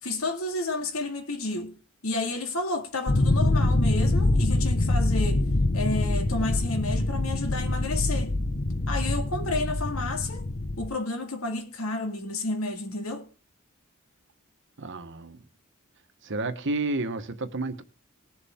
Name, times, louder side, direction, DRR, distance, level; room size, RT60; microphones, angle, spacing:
voice 1, 0.0-1.7 2.0-5.5 5.7-8.3 8.9-10.4 10.8-13.3, left 2 dB, 85° left, 2.1 m, -31 dB
sound 1, 3.1-10.9, left 2 dB, 45° left, 0.8 m, -25 dB
voice 2, 14.8-15.4 16.2-17.8, right 2 dB, 60° right, 1.2 m, -31 dB
19.5 x 7.1 x 3.6 m
head